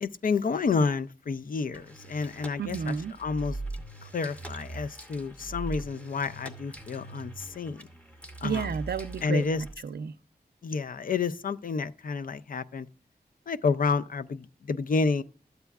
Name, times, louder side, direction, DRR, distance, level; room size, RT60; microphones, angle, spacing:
voice 1, 0.0-3.6 4.0-7.9 8.4-8.7 9.2-9.6 10.6-12.9 13.5-15.2, left 4 dB, 60° left, 0.4 m, -29 dB
sound 1, 1.7-9.7, right 2 dB, 10° left, 0.7 m, -42 dB
voice 2, 2.6-3.1 8.4-10.1, right 6 dB, 75° right, 0.5 m, -32 dB
12.5 x 8.0 x 2.3 m
wide cardioid pair, 100°, 17 cm